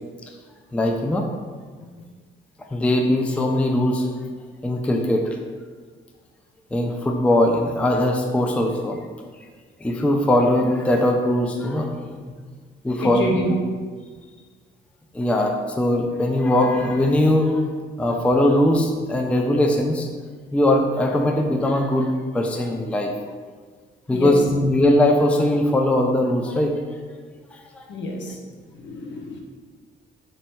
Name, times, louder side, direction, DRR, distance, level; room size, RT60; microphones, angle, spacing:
voice 1, 0.7-1.2 2.7-4.1 4.6-5.2 6.7-9.0 9.8-11.9 12.8-13.3 15.1-17.6 18.0-20.1 20.5-23.1 24.1-26.7 27.8-27.9, left 1 dB, 5° left, 2 dB, 0.4 m, -20 dB
voice 2, 13.0-13.6 24.1-24.4 27.9-28.4 28.8-29.4, equal, 65° left, 1 dB, 0.7 m, -27 dB
3.2 x 2.6 x 4.4 m, 1.5 s
cardioid pair, 90°, 20 cm